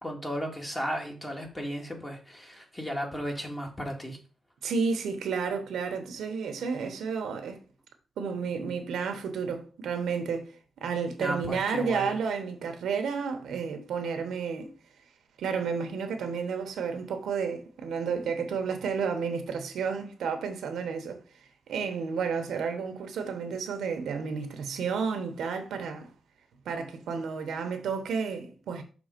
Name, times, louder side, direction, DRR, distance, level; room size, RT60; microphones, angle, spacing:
voice 1, 0.0-4.2 11.2-12.2, equal, 15° left, 1.7 m, -35 dB
voice 2, 4.6-7.6 8.2-14.7 15.4-21.2 21.7-26.1 26.6-28.8, right 5 dB, 85° right, 1.1 m, -31 dB
6.2 x 3.5 x 5.1 m
cardioid pair, 110°, 0 cm